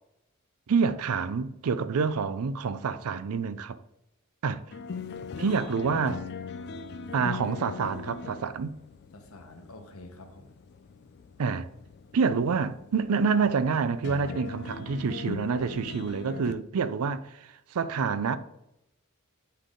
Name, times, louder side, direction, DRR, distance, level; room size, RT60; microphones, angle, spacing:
voice 1, 0.7-3.8 4.4-4.6 5.4-6.2 7.1-8.8 11.4-11.7 12.1-18.4, right 5 dB, 75° right, 0.4 m, -27 dB
sound 1, 4.7-16.5, left 5 dB, 50° left, 0.4 m, -41 dB
voice 2, 5.3-6.2 9.1-10.5, left 2 dB, 70° left, 1.0 m, -46 dB
9.7 x 3.4 x 3.7 m
head